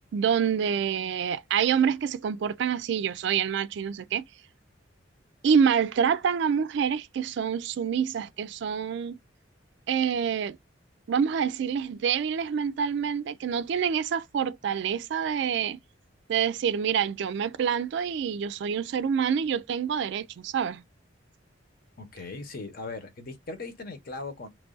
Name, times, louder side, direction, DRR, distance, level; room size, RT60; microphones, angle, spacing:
voice 1, 0.1-4.2 5.4-9.2 9.9-10.6 11.1-15.8 16.3-20.8, right 7 dB, 65° right, 0.3 m, -27 dB
voice 2, 22.0-24.5, left 3 dB, 50° left, 0.9 m, -39 dB
3.0 x 2.4 x 3.8 m
head